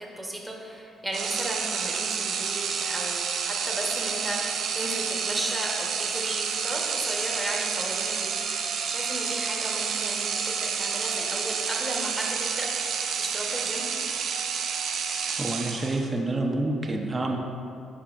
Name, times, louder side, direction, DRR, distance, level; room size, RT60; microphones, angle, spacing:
voice 1, 0.0-13.8, right 1 dB, 5° right, -2 dB, 1.2 m, -35 dB
sound 1, 1.1-16.2, right 6 dB, 70° right, 0.5 m, -29 dB
voice 2, 15.3-17.4, right 2 dB, 25° right, 1 dB, 0.6 m, -28 dB
10.0 x 4.2 x 2.5 m, 2.6 s
cardioid pair, 90°, 0 cm